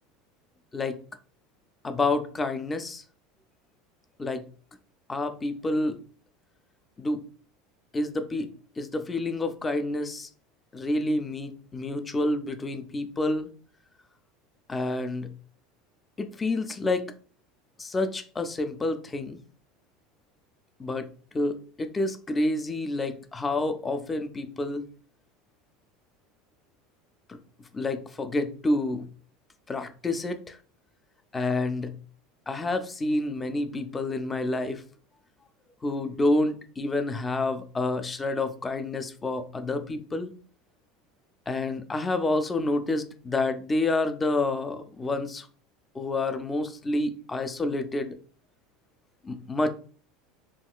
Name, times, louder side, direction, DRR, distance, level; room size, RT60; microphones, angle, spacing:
voice 1, 1.8-3.0 4.2-4.4 5.1-5.9 7.0-7.2 7.9-8.5 8.8-10.3 10.7-13.5 14.7-15.3 16.2-17.1 17.8-19.4 20.8-21.1 21.3-24.8 27.3-27.4 27.7-29.1 29.7-30.6 31.3-31.9 32.5-34.8 35.8-40.3 41.5-45.5 45.9-48.2 49.2-49.7, left 2 dB, 15° left, 0.3 m, -28 dB
3.5 x 2.3 x 2.3 m
supercardioid pair, 145°, 0 cm